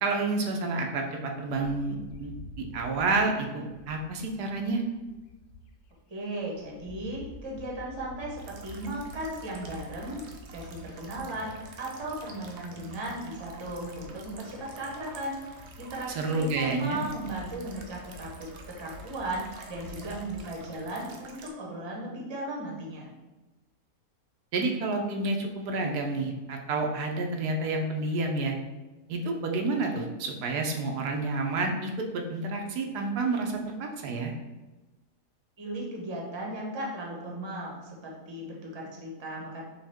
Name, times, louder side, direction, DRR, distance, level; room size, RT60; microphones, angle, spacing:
voice 1, 0.0-4.8 16.1-17.0 24.5-28.5 29.1-34.3, right 3 dB, 85° right, 2 dB, 1.2 m, -29 dB
Bird, 1.5-6.0 6.4-20.6, left 1 dB, 80° left, 0.5 m, -49 dB
voice 2, 6.1-10.2 10.5-11.5 11.8-15.4 15.8-23.1 35.6-39.6, right 1 dB, 20° right, -3 dB, 0.8 m, -36 dB
sound 1, 8.4-21.5, right 4 dB, 65° right, 0.9 m, -49 dB
6.2 x 2.4 x 3.4 m, 1.1 s
omnidirectional pair, 1.7 m